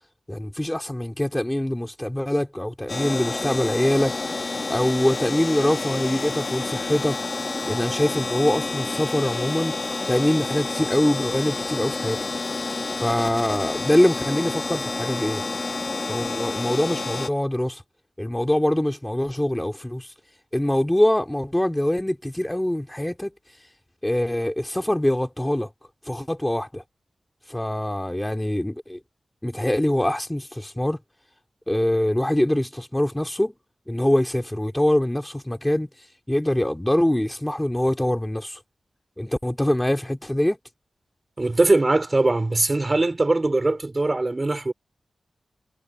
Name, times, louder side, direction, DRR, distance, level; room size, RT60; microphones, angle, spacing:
voice 1, 0.3-4.2 4.7-12.2 13.0-15.4 16.1-17.8 18.2-20.1 20.5-23.3 24.0-25.7 26.0-26.8 27.5-29.0 29.4-31.0 31.7-33.5 33.9-38.6 39.2-40.6, left 1 dB, 10° left, 2.5 m, -24 dB
sound 1, 2.9-17.3, left 3 dB, 40° left, 1.3 m, -29 dB
voice 2, 41.4-44.7, right 2 dB, 30° right, 4.5 m, -21 dB
wide cardioid pair, 75°, 0 cm